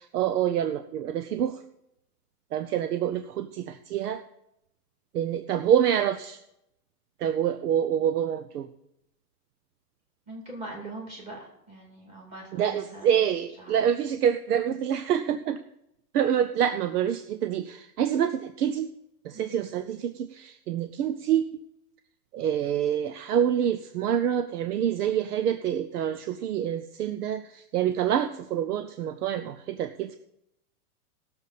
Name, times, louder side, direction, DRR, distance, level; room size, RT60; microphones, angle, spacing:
voice 1, 0.0-1.6 2.5-4.2 5.1-6.4 7.2-8.7 12.5-15.6 16.1-18.9 19.2-21.4 22.3-30.2, right 9 dB, 75° right, 10 dB, 0.8 m, -26 dB
voice 2, 10.3-13.2 13.6-13.8 19.3-19.6, right 2 dB, 15° right, -1 dB, 2.4 m, -42 dB
18.5 x 7.0 x 4.1 m, 0.82 s
supercardioid pair, 180°, 47 cm